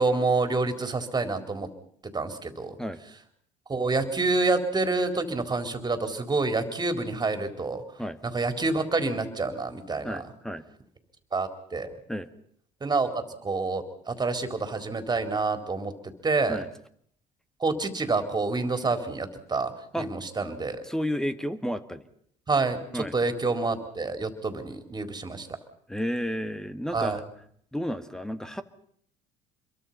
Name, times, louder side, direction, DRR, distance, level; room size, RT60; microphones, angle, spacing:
voice 1, 0.0-1.7 2.0-2.8 3.7-7.8 8.2-10.2 11.3-11.9 12.8-13.1 13.4-16.6 17.6-20.8 22.5-25.5 26.9-27.2, right 3 dB, 25° right, 8 dB, 3.9 m, -28 dB
voice 2, 10.0-10.6 12.1-12.3 16.5-16.7 19.9-20.1 20.8-22.0 22.9-23.1 25.9-27.2 27.7-28.6, equal, 5° left, 11 dB, 1.9 m, -31 dB
26.5 x 23.0 x 5.6 m, 0.64 s
hypercardioid pair, 70°, 16 cm